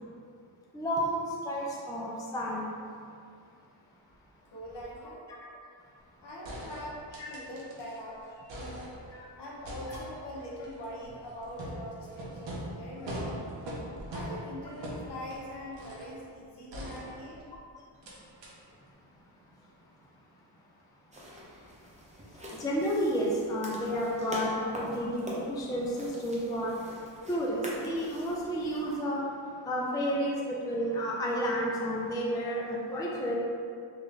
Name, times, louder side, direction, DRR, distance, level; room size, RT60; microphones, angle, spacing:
voice 1, 0.7-2.7 9.9-10.0 22.6-26.7 27.3-29.2 29.6-33.3, equal, 10° left, -3 dB, 0.4 m, -31 dB
voice 2, 4.5-5.2 6.2-8.2 8.5-8.9 9.4-13.5 14.1-17.4, equal, 55° left, -4 dB, 1.0 m, -42 dB
sound 1, 6.0-6.1 6.4-8.0 8.3-9.2 9.6-16.2 16.7-17.6 18.0-18.1 18.4-18.5, equal, 60° right, 0.9 m, -41 dB
sound 2, 21.1-29.0, equal, 15° right, 0.7 m, -44 dB
3.8 x 2.5 x 3.3 m, 2.4 s
cardioid pair, 70°, 48 cm